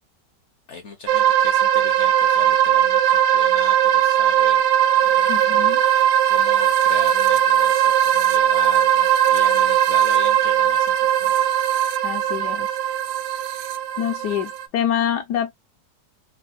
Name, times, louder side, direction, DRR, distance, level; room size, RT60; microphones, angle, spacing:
voice 1, 0.7-4.6 5.0-11.3 14.1-14.4, left 5 dB, 55° left, 0.8 m, -39 dB
sound 1, 1.1-14.7, right 10 dB, 85° right, 1.3 m, -19 dB
voice 2, 5.3-5.8 12.0-12.7 14.0-15.5, left 9 dB, 75° left, 1.2 m, -25 dB
4.9 x 2.2 x 2.4 m
omnidirectional pair, 1.9 m